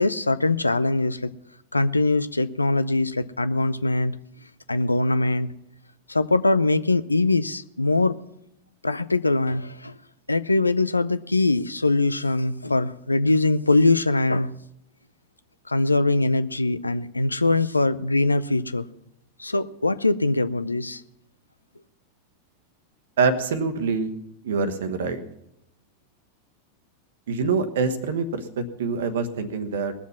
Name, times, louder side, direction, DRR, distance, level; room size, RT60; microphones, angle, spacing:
voice 1, 0.0-1.3 1.7-4.2 4.7-5.5 6.1-8.2 8.8-9.9 10.3-14.5 15.7-18.9 19.4-21.0, left 2 dB, 80° left, 15 dB, 0.5 m, -22 dB
voice 2, 23.2-24.1 24.4-25.2 27.3-29.9, right 4 dB, 60° right, 9 dB, 1.2 m, -25 dB
20.5 x 7.2 x 5.9 m, 0.81 s
figure-of-eight pair, 90°, 0 cm